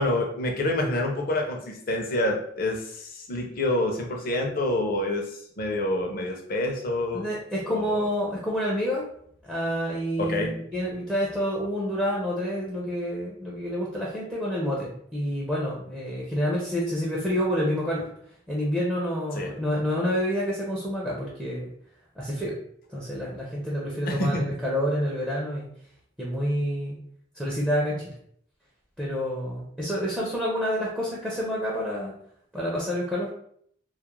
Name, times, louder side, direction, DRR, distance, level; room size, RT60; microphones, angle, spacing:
voice 1, 0.0-5.3 5.6-7.3 7.7-8.0 10.2-10.6 19.3-19.5 24.1-24.4, left 1 dB, 55° left, 2 dB, 0.5 m, -27 dB
voice 2, 7.1-9.1 9.4-18.1 18.5-21.7 22.2-22.5 22.9-25.7 26.2-27.0 27.4-28.1 29.0-32.1 32.5-33.3, equal, 5° right, -6 dB, 0.5 m, -28 dB
2.3 x 2.0 x 2.9 m, 0.66 s
head